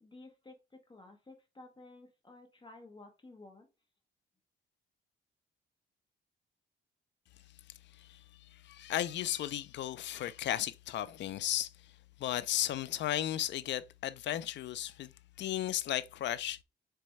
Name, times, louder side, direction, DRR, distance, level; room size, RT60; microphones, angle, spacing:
voice 1, 0.0-3.7, left 2 dB, 25° left, 0.9 m, -54 dB
voice 2, 8.5-11.7 12.2-15.1 15.4-16.6, left 12 dB, 65° left, 0.4 m, -35 dB
4.2 x 3.3 x 3.1 m
cardioid pair, 90°, 20 cm